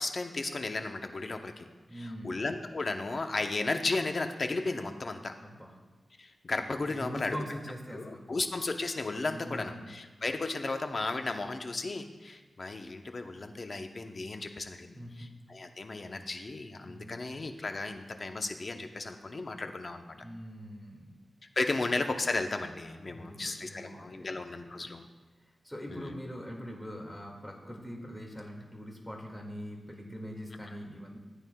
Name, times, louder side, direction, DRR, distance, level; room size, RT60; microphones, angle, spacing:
voice 1, 0.0-5.3 6.2-7.3 7.9-20.1 21.6-25.1 25.9-26.1, left 3 dB, 50° left, 6 dB, 0.8 m, -34 dB
voice 2, 1.9-2.4 5.4-5.7 6.8-8.4 9.2-9.9 14.9-15.1 16.8-17.2 20.1-21.2 21.7-21.8 23.1-24.3 24.7-24.9 25.6-31.2, equal, 10° left, 0 dB, 2.1 m, -43 dB
14.5 x 9.1 x 2.3 m, 1.3 s
cardioid pair, 70°, 0 cm